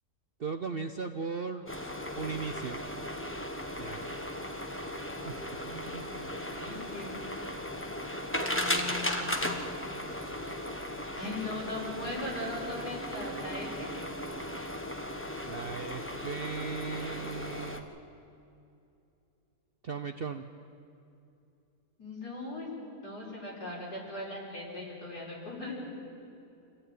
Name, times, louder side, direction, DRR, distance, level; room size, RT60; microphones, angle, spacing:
voice 1, 0.4-1.7 2.1-2.8 3.8-4.0 5.0-5.3 5.9-6.0 15.4-17.9 19.8-20.5, right 5 dB, 50° right, 6 dB, 0.8 m, -37 dB
sound 1, 1.7-17.8, left 1 dB, 10° left, 1.1 m, -36 dB
voice 2, 6.1-7.2 8.3-9.6 11.1-13.9 22.0-22.7 23.0-25.8, left 2 dB, 85° left, -6 dB, 5.6 m, -39 dB
26.0 x 14.5 x 9.2 m, 2.7 s
omnidirectional pair, 1.7 m